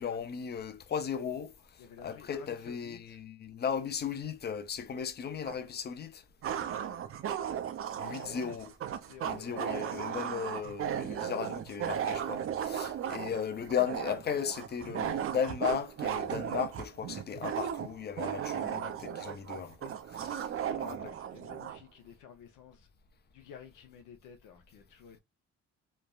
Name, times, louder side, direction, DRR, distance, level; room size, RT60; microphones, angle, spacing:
voice 1, 0.0-1.5 2.0-6.2 8.0-8.7 9.2-20.4 20.8-20.9, left 7 dB, 35° left, 0.5 m, -36 dB
voice 2, 1.8-3.2 6.4-7.7 8.0-8.5 8.9-9.8 20.2-22.9 23.3-25.2, left 7 dB, 90° left, 0.7 m, -53 dB
sound 1, 5.4-5.6 6.4-21.8, right 9 dB, 50° right, 0.4 m, -36 dB
3.2 x 2.1 x 2.3 m
cardioid pair, 90°, 30 cm